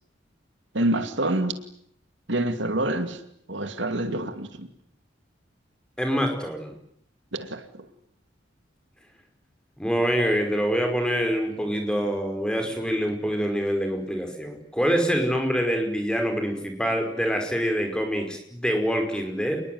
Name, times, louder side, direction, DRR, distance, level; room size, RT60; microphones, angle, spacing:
voice 1, 0.7-1.6 2.3-3.2 3.5-4.7 7.3-7.9, right 1 dB, 75° right, 2.5 m, -27 dB
voice 2, 6.0-6.7 9.8-19.6, equal, 5° left, 5.2 m, -25 dB
28.0 x 21.0 x 9.6 m
head